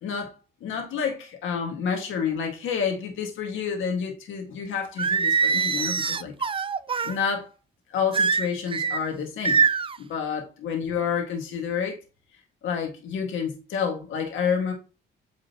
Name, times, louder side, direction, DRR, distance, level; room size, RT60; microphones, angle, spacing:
voice 1, 0.0-6.3 7.0-7.5 7.9-9.6 10.0-12.0 12.6-14.7, left 6 dB, 80° left, 1.9 m, -29 dB
Singing, 5.0-7.2 8.1-9.0 9.4-10.0, right 5 dB, 25° right, 0.5 m, -23 dB
8.8 x 3.8 x 2.9 m
cardioid pair, 90°, 20 cm